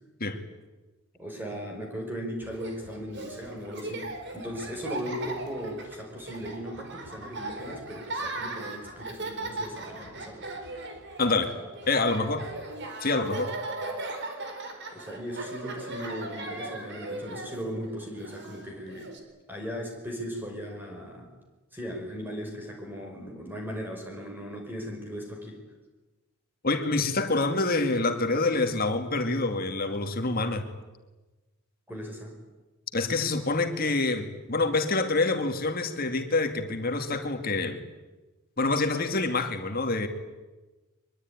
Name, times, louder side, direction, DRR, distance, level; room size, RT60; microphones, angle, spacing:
voice 1, 1.2-4.1 4.3-10.5 14.9-19.1 19.5-21.3 21.7-25.6 31.9-32.4, equal, 10° right, 1 dB, 5.5 m, -37 dB
Laughter, 2.4-19.2, right 2 dB, 50° right, 4.2 m, -38 dB
voice 2, 11.2-11.5 11.9-12.5 13.0-13.5 26.6-30.7 32.9-37.8 38.6-40.1, left 3 dB, 40° left, 7 dB, 2.5 m, -26 dB
23.5 x 22.0 x 9.9 m, 1.2 s
head